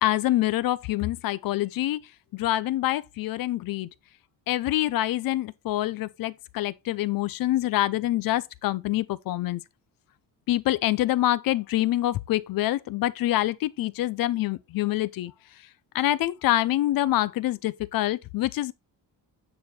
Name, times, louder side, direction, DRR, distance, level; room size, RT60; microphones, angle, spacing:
voice 1, 0.0-2.0 2.3-3.9 4.5-9.6 10.5-15.3 15.9-18.7, left 15 dB, 65° left, 0.6 m, -26 dB
9.7 x 4.3 x 4.3 m
cardioid pair, 175°, 37 cm